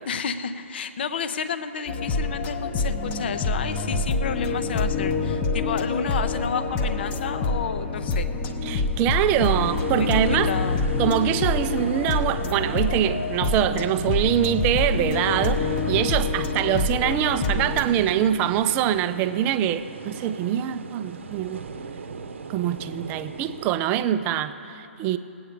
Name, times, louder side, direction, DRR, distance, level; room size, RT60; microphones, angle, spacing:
voice 1, 0.1-8.3 9.4-9.6 9.9-10.8, left 6 dB, 50° left, 0.7 m, -31 dB
sound 1, 1.9-17.8, left 3 dB, 25° left, 0.8 m, -26 dB
voice 2, 8.6-10.5 11.0-21.7 22.5-25.2, right 10 dB, 25° right, 0.4 m, -24 dB
sound 2, 8.6-23.8, right 5 dB, 65° right, 0.8 m, -38 dB
19.0 x 8.7 x 5.0 m
figure-of-eight pair, 130°, 7 cm